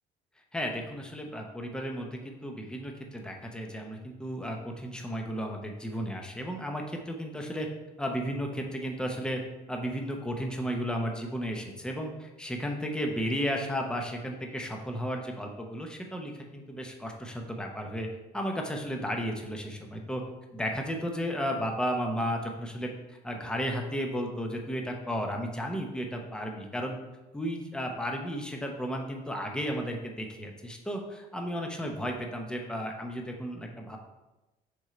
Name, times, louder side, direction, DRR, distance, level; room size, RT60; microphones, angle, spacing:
voice 1, 0.5-7.7 8.0-9.4 9.7-18.1 18.3-20.2 20.5-27.0 27.3-34.0, equal, 5° left, 2 dB, 0.8 m, -34 dB
6.1 x 3.8 x 4.3 m, 1.1 s
cardioid pair, 110°, 17 cm